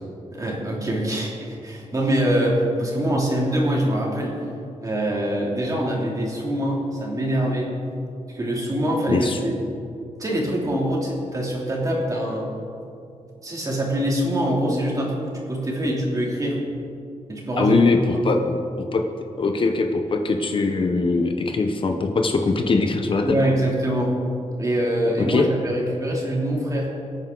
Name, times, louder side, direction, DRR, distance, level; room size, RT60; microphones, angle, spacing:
voice 1, 0.3-4.4 4.8-7.7 8.3-9.6 10.2-12.5 13.4-16.6 17.3-17.8 18.1-18.4 23.2-24.1 24.6-26.9, right 1 dB, 25° right, -3 dB, 3.1 m, -24 dB
voice 2, 9.1-9.4 17.6-18.4 18.8-19.0 19.4-23.2 25.3-25.5, left 3 dB, 40° left, 4 dB, 0.9 m, -21 dB
23.0 x 9.1 x 3.9 m, 2.5 s
wide cardioid pair, 125°, 13 cm